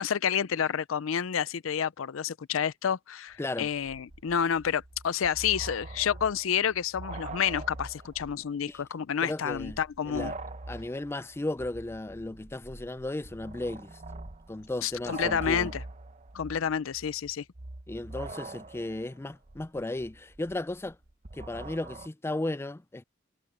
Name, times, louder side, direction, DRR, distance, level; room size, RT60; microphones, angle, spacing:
voice 1, 0.0-10.3 14.8-15.8 16.3-17.4, left 8 dB, 80° left, 0.5 m, -29 dB
sound 1, 3.3-3.4 3.6-8.5 8.8-8.9 9.4-22.1, right 2 dB, 35° right, 0.8 m, -43 dB
voice 2, 3.4-3.7 8.7-8.8 9.2-9.8 10.1-10.3 10.7-14.0 14.5-15.7 17.9-21.0 21.3-23.0, left 2 dB, 10° left, 0.3 m, -35 dB
head